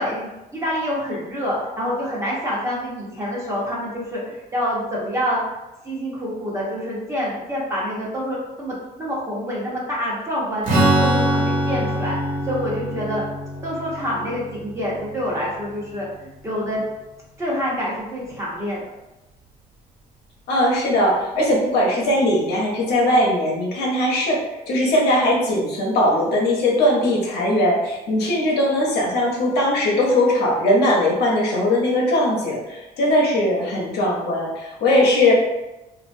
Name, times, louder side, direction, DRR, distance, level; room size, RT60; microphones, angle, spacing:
voice 1, 0.0-5.4 5.8-12.2 12.4-13.2 13.6-16.8 17.4-18.8, equal, 15° right, -6 dB, 1.0 m, -27 dB
Strum, 10.6-16.3, right 1 dB, 50° right, 1.2 m, -24 dB
voice 2, 20.5-35.3, left 1 dB, 75° left, -3 dB, 0.9 m, -20 dB
2.9 x 2.5 x 2.6 m, 0.98 s
cardioid pair, 110°, 17 cm